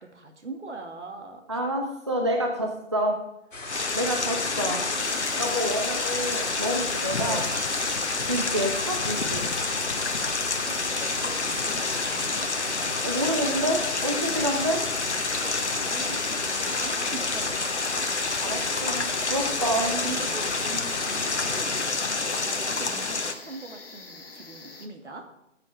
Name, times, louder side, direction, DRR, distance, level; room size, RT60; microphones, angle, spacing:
voice 1, 0.0-1.4 7.2-7.5 10.2-12.3 15.8-18.1 18.3-19.2 19.8-21.8 22.2-25.3, right 3 dB, 65° right, 3 dB, 2.4 m, -42 dB
voice 2, 1.5-3.2 3.9-4.8 5.4-7.4 8.2-9.5 13.0-14.8 15.1-15.2 18.4-20.0, equal, 25° right, 2 dB, 0.6 m, -28 dB
sound 1, 3.5-21.6, left 2 dB, 80° left, 2.4 m, -35 dB
sound 2, 3.7-23.3, left 3 dB, 65° left, 1.3 m, -29 dB
sound 3, 5.0-24.9, left 3 dB, 50° left, 1.6 m, -45 dB
15.5 x 7.5 x 3.6 m, 0.85 s
figure-of-eight pair, 160°, 37 cm